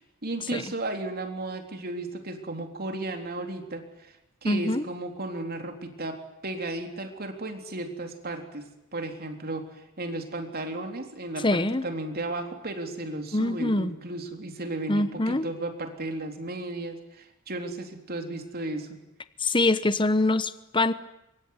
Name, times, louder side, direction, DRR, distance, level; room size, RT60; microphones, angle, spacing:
voice 1, 0.0-4.2 4.4-8.6 8.9-19.0, right 2 dB, 45° right, 5 dB, 3.6 m, -34 dB
voice 2, 4.4-4.8 11.4-11.8 13.3-13.9 14.9-15.4 19.4-20.9, left 2 dB, 20° left, 13 dB, 1.0 m, -24 dB
25.5 x 24.0 x 9.6 m, 0.90 s
head